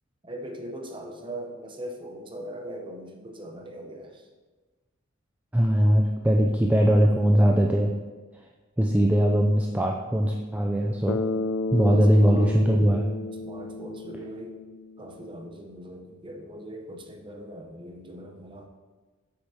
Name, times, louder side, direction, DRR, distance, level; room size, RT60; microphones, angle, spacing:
voice 1, 0.2-4.3 11.7-12.6 13.4-14.6 15.0-18.7, right 1 dB, 25° right, 2 dB, 0.8 m, -40 dB
voice 2, 5.5-7.9 8.8-11.2 11.7-13.1, equal, 5° right, 1 dB, 0.3 m, -21 dB
Bass guitar, 11.1-15.3, left 2 dB, 70° left, 0.4 m, -32 dB
7.9 x 6.5 x 2.8 m, 1.3 s
head